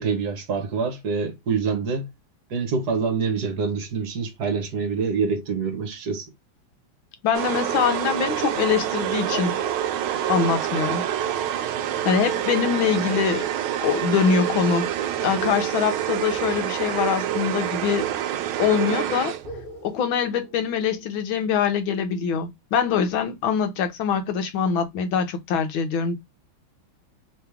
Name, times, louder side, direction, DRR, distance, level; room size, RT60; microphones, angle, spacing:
voice 1, 0.0-2.1 2.5-6.2, right 5 dB, 55° right, 1.5 m, -26 dB
voice 2, 7.2-9.6 10.3-11.0 12.0-13.5 13.8-14.9 15.2-18.1 18.6-19.4 19.8-26.2, left 7 dB, 75° left, 1.6 m, -23 dB
sound 1, 7.3-19.7, right 11 dB, 80° right, 1.4 m, -27 dB
sound 2, 9.3-14.7 17.0-18.4 18.7-18.8 19.4-21.6, left 3 dB, 55° left, 1.8 m, -45 dB
3.8 x 3.1 x 3.3 m
omnidirectional pair, 2.3 m